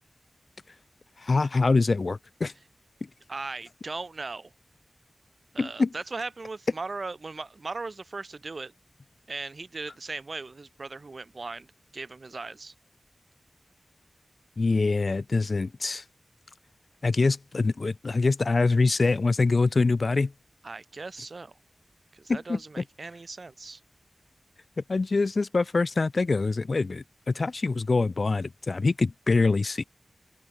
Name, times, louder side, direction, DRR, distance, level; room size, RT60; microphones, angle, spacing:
voice 1, 1.2-2.5 5.6-5.9 14.6-16.0 17.0-20.3 22.3-22.8 24.9-29.8, left 3 dB, 65° left, 1.7 m, -24 dB
voice 2, 3.3-4.5 5.5-8.7 9.3-11.7 11.9-12.7 20.6-21.6 22.1-23.8, right 3 dB, 65° right, 2.0 m, -38 dB
open air
wide cardioid pair, 60°, 0 cm